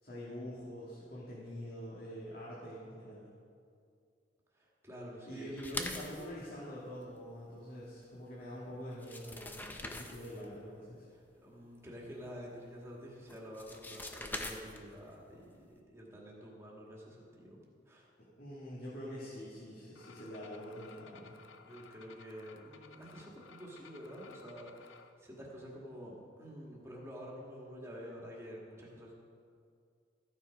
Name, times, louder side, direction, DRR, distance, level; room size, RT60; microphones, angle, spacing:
voice 1, 0.0-3.3 5.3-11.1 18.4-21.4, equal, 50° left, -8 dB, 2.2 m, -45 dB
voice 2, 4.5-5.8 11.4-15.5 15.9-17.6 17.9-18.1 21.6-29.1, equal, 15° right, -4 dB, 1.9 m, -49 dB
sound 1, 5.6-6.3 8.5-8.6 8.9-10.4 13.3-15.0, left 2 dB, 10° left, 0.6 m, -42 dB
sound 2, 19.9-25.1, left 5 dB, 85° left, 0.6 m, -57 dB
14.0 x 7.4 x 5.2 m, 2.3 s
head